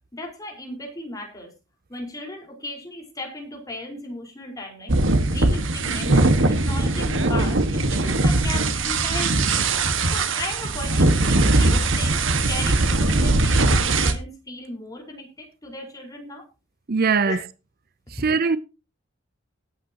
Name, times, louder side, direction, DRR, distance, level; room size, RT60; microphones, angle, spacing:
voice 1, 0.1-1.5 1.9-4.9 5.3-9.5 10.1-16.4 17.2-17.4, left 1 dB, 20° left, 4.8 m, -36 dB
sound 1, 4.9-14.1, right 2 dB, 85° right, 1.7 m, -20 dB
voice 2, 16.9-17.4 18.2-18.6, right 5 dB, 50° right, 0.7 m, -20 dB
19.5 x 8.8 x 2.9 m
head